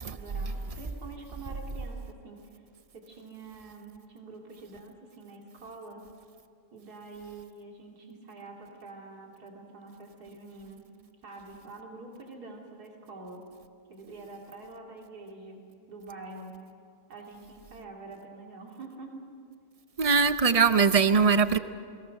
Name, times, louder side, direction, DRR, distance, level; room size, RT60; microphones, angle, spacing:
voice 1, 0.1-2.6 2.9-6.1 6.7-10.9 11.2-13.5 13.9-16.6 17.1-19.3, right 3 dB, 80° right, 0 dB, 3.2 m, -46 dB
voice 2, 20.0-21.6, right 5 dB, 45° right, 11 dB, 0.4 m, -21 dB
29.0 x 21.0 x 6.5 m, 2.3 s
omnidirectional pair, 1.6 m